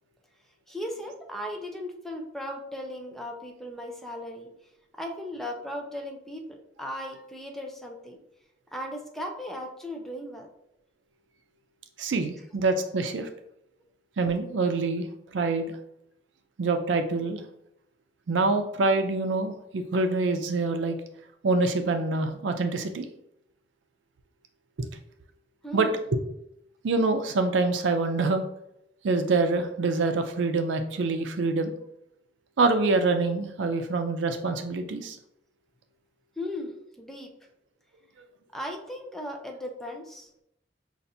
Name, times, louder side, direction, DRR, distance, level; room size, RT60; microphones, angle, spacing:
voice 1, 0.7-4.5 5.0-8.2 8.7-10.5 25.6-26.1 36.4-37.3 38.5-40.3, left 1 dB, ahead, 2 dB, 0.5 m, -37 dB
voice 2, 12.0-13.3 14.2-15.1 15.3-15.7 16.6-17.4 18.3-21.0 21.4-23.0 24.8-24.9 25.7-25.9 26.8-28.4 29.0-31.7 32.6-35.2, right 3 dB, 85° right, 7 dB, 0.4 m, -25 dB
5.5 x 2.5 x 2.6 m, 0.78 s
head